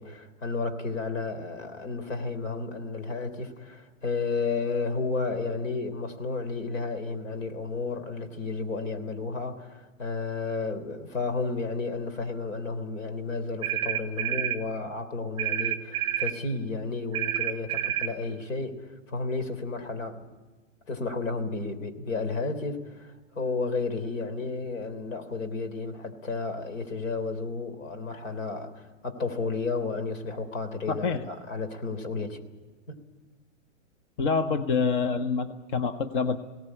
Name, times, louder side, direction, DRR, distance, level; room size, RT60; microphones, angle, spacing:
voice 1, 0.0-20.2 20.9-32.4 32.9-33.0, left 3 dB, 75° left, 8 dB, 3.6 m, -32 dB
sound 1, 13.6-14.6 15.4-16.4 17.1-18.1, right 12 dB, 10° right, 1.0 m, -29 dB
voice 2, 30.9-31.2 34.2-36.4, left 5 dB, 40° left, 8 dB, 1.0 m, -26 dB
18.5 x 17.5 x 9.8 m, 1.2 s
hypercardioid pair, 155°, 38 cm